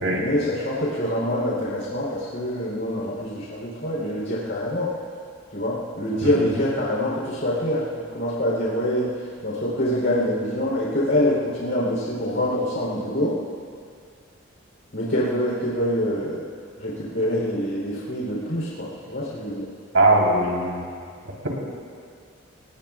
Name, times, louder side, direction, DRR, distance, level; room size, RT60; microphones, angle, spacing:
voice 1, 0.1-4.9 5.5-13.4 14.9-16.4 16.8-19.7, equal, 60° left, -6 dB, 3.9 m, -25 dB
voice 2, 19.9-20.8, right 2 dB, 75° right, -2 dB, 3.9 m, -19 dB
30.0 x 19.0 x 2.5 m, 2.2 s
head